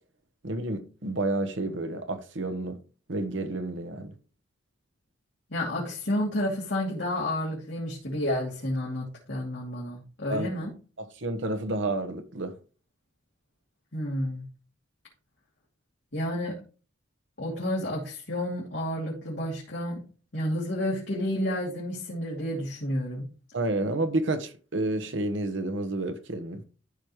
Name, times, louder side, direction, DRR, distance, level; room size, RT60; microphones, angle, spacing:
voice 1, 0.4-2.8 3.1-4.1 10.3-10.7 11.0-12.5 23.5-26.6, right 2 dB, 70° right, 1.2 m, -30 dB
voice 2, 5.5-10.7 13.9-14.4 16.1-16.6 17.4-20.0 20.3-23.3, left 1 dB, 60° left, 2.8 m, -30 dB
13.5 x 5.2 x 3.1 m
head